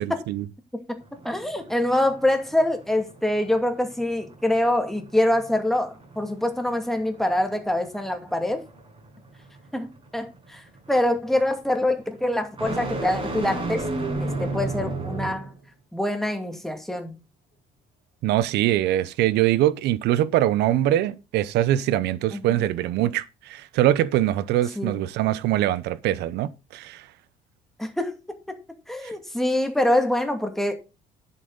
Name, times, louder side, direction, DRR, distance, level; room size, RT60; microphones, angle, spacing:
sound 1, 1.0-15.6, right 2 dB, 30° right, 6.2 m, -35 dB
voice 1, 1.2-8.6 9.7-9.9 10.1-10.6 10.9-13.8 14.2-15.5 15.9-17.2 22.3-22.4 24.8-25.0 27.8-28.6 28.9-30.7, left 1 dB, ahead, 2.4 m, -25 dB
voice 2, 18.2-27.0 29.0-29.1, right 13 dB, 80° right, 0.8 m, -23 dB
10.0 x 8.4 x 4.0 m
cardioid pair, 110°, 17 cm